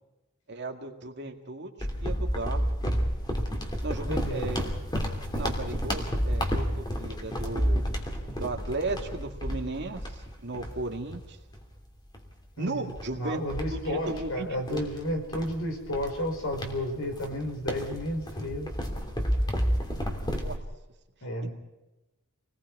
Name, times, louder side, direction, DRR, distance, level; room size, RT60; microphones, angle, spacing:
voice 1, 0.5-2.6 3.8-4.6 5.3-7.8 8.4-11.4 12.6-13.4 13.7-14.8 20.1-20.6 21.4-21.5, right 2 dB, 50° right, 4 dB, 2.2 m, -35 dB
sound 1, 1.8-11.7 12.1-12.3 12.9-20.6, equal, 20° left, 3.0 m, -31 dB
voice 2, 4.1-4.5 12.6-12.9 13.2-18.7 21.2-21.5, equal, 65° left, 4 dB, 5.1 m, -32 dB
28.5 x 20.0 x 4.8 m, 1.0 s
head